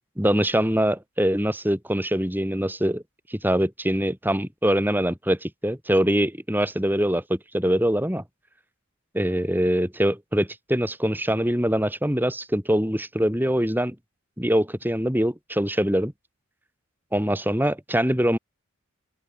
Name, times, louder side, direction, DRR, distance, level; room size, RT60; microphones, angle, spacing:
voice 1, 0.2-3.0 3.3-8.2 9.1-14.0 14.4-16.1 17.1-18.4, equal, 10° right, 5.3 m, -23 dB
head